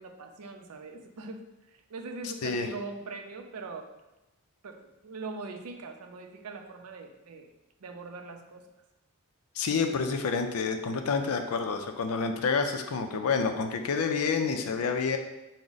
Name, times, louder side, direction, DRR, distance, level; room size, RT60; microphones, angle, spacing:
voice 1, 0.0-1.4 1.9-3.9 4.6-4.8 5.0-7.5 7.8-8.6, right 3 dB, 80° right, 5 dB, 0.5 m, -41 dB
voice 2, 9.6-15.2, left 5 dB, 70° left, 6 dB, 0.4 m, -28 dB
4.7 x 2.1 x 3.9 m, 1.0 s
head